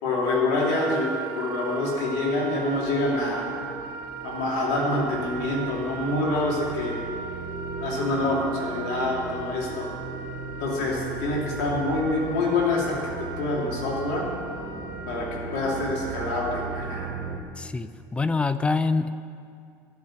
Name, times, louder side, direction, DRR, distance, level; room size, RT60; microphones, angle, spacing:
voice 1, 0.0-3.5 4.2-7.0 7.8-9.9 10.6-14.3 15.1-17.1, left 2 dB, 85° left, -2 dB, 2.9 m, -26 dB
Wind instrument woodwind instrument, 0.6-17.2, right 5 dB, 65° right, 1.3 m, -38 dB
sound 1, 1.5-17.4, right 4 dB, 30° right, 1.2 m, -38 dB
voice 2, 17.6-19.1, left 4 dB, 15° left, 13 dB, 0.4 m, -25 dB
11.5 x 7.2 x 9.3 m, 2.3 s
cardioid pair, 135°, 8 cm